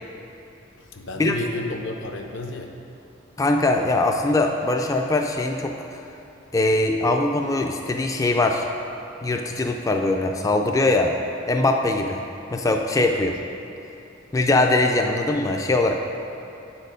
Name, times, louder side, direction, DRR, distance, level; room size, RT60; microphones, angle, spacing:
voice 1, 0.8-2.7 13.1-13.2, left 2 dB, 65° left, 3 dB, 0.7 m, -31 dB
voice 2, 3.4-6.0 6.5-8.7 9.2-11.1 11.5-12.2 12.5-13.3 14.3-15.9, left 2 dB, 15° left, 3 dB, 0.3 m, -21 dB
8.6 x 4.4 x 5.0 m, 2.7 s
head